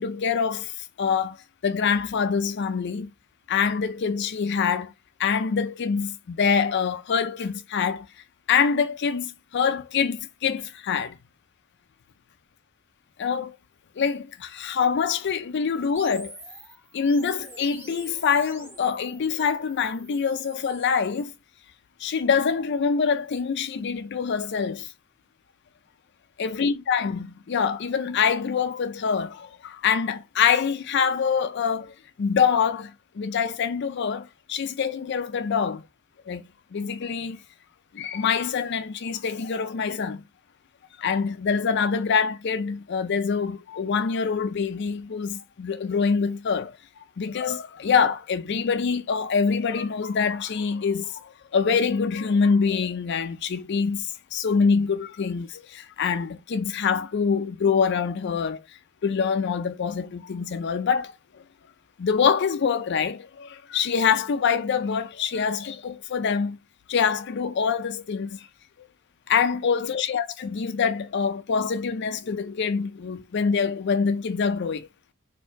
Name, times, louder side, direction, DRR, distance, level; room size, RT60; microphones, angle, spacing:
voice 1, 0.0-1.4 1.6-3.1 3.5-4.9 5.2-8.1 8.5-11.2 13.2-13.6 14.0-16.3 16.9-21.3 22.0-24.9 26.4-35.8 36.3-36.4 36.7-37.4 37.9-40.2 41.0-46.7 47.2-58.6 59.0-61.1 62.0-66.6 66.9-68.5 69.3-74.9, left 6 dB, 55° left, 0.4 m, -25 dB
sound 1, 16.0-21.0, right 1 dB, 10° right, 1.1 m, -46 dB
4.5 x 2.7 x 4.4 m
head